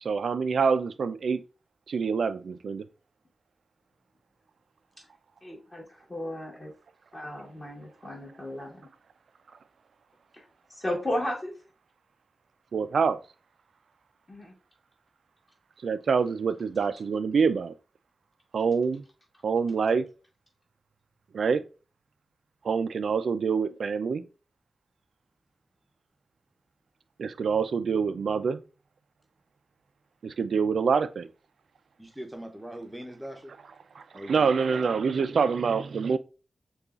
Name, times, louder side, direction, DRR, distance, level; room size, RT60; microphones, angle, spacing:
voice 1, 0.0-1.4 1.9-2.8 12.7-13.2 15.8-17.7 18.5-19.0 19.4-20.1 21.3-21.6 22.6-24.2 27.2-28.6 30.2-31.3 34.0-36.2, right 5 dB, 80° right, 0.3 m, -26 dB
voice 2, 5.4-6.7 7.1-8.9 10.3-11.5 14.3-14.5, left 1 dB, 25° left, 1.3 m, -35 dB
voice 3, 32.0-33.5 34.1-34.8, right 1 dB, 5° right, 0.6 m, -41 dB
6.6 x 2.3 x 2.4 m
wide cardioid pair, 135°, 0 cm